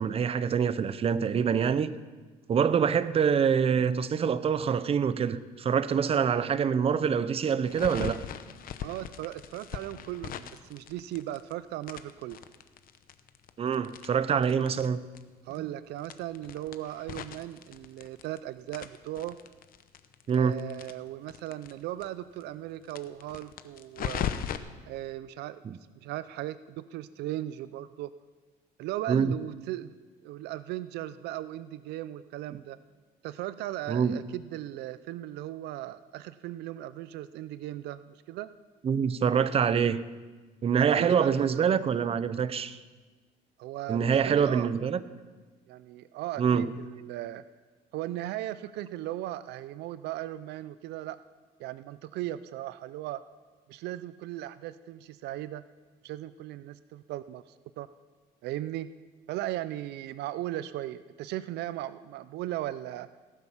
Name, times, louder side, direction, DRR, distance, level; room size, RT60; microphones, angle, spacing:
voice 1, 0.0-1.9 2.5-8.2 13.6-15.0 20.3-20.5 25.6-25.8 29.1-29.3 33.9-34.2 38.8-40.0 40.6-42.8 43.9-45.0 46.4-46.7, right 7 dB, 35° right, 0.6 m, -25 dB
sound 1, 7.6-11.5 11.8-14.9 15.2-15.3 15.5-15.6 16.0-18.4 18.7-21.7 22.0-22.1 22.4-22.5 22.9-24.6, left 9 dB, 60° left, 0.8 m, -38 dB
voice 2, 8.8-12.4 15.5-19.4 20.3-24.3 24.9-25.6 26.0-28.1 28.8-29.9 30.2-32.8 33.2-38.5 40.8-41.6 43.6-44.7 45.7-47.4 47.9-51.2 51.6-53.2 53.7-55.6 56.0-57.4 57.8-57.9 58.4-58.9 59.3-63.1, right 14 dB, 80° right, 0.5 m, -37 dB
18.5 x 8.1 x 5.7 m
cardioid pair, 110°, 17 cm